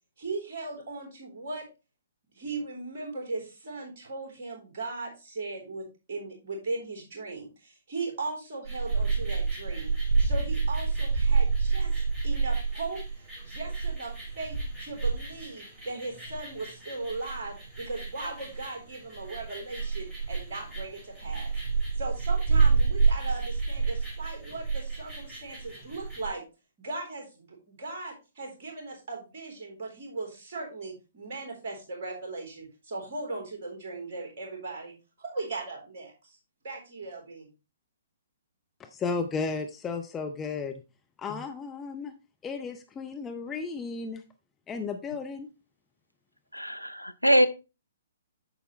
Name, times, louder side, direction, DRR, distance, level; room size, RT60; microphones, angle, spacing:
voice 1, 0.2-1.7 2.3-9.9 10.2-13.0 13.4-21.5 22.0-26.4 26.8-36.4 36.6-37.5, right 3 dB, 40° right, 3.6 m, -38 dB
sound 1, 8.6-26.3, right 4 dB, 10° right, 4.9 m, -29 dB
voice 2, 38.8-40.8 41.2-42.1 42.4-44.2 44.7-45.5, left 4 dB, 15° left, 0.6 m, -34 dB
voice 3, 46.5-47.5, equal, 90° left, 0.7 m, -23 dB
8.9 x 6.7 x 3.1 m
figure-of-eight pair, 125°, 0 cm